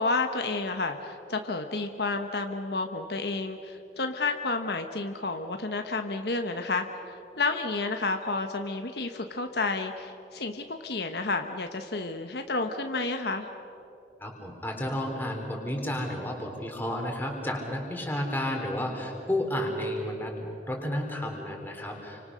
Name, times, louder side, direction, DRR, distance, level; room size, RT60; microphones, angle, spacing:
voice 1, 0.0-6.8 7.4-13.5, left 3 dB, 65° left, 5 dB, 1.2 m, -30 dB
voice 2, 14.2-20.3 20.7-22.2, left 1 dB, 10° left, 1 dB, 3.8 m, -32 dB
29.5 x 25.5 x 6.4 m, 2.9 s
head